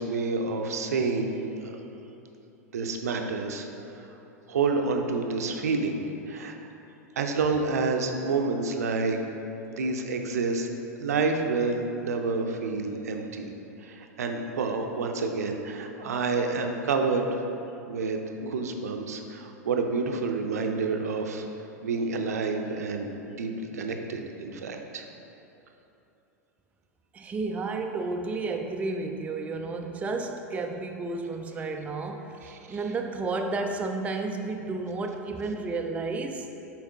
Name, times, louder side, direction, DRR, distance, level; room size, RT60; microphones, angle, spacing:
voice 1, 0.0-1.4 1.6-1.7 2.7-4.1 4.5-6.0 6.3-6.6 7.2-9.2 9.7-10.7 11.0-13.5 13.8-17.4 17.9-21.5 21.8-25.0 32.4-32.8, right 4 dB, 70° right, 4 dB, 0.6 m, -29 dB
voice 2, 27.1-32.3 32.7-36.5, right 3 dB, 15° right, 3 dB, 0.4 m, -32 dB
7.2 x 4.7 x 3.5 m, 2.9 s
figure-of-eight pair, 90°, 9 cm